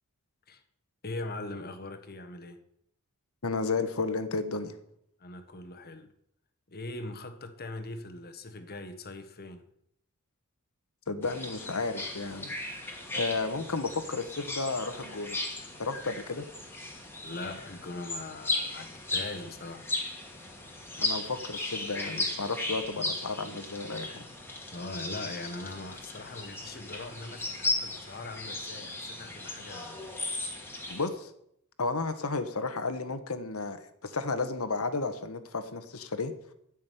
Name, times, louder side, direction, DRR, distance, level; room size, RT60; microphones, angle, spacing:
voice 1, 1.0-2.6 5.2-6.1 6.7-9.7 17.2-19.9 24.7-30.0, left 2 dB, 45° left, 1.5 m, -41 dB
voice 2, 3.4-4.7 11.1-12.5 13.1-15.4 15.8-16.4 21.0-24.3 30.9-31.3 31.8-36.3, left 3 dB, 70° left, 1.4 m, -33 dB
sound 1, 11.2-31.1, left 2 dB, 10° left, 2.4 m, -36 dB
12.5 x 6.4 x 9.3 m
head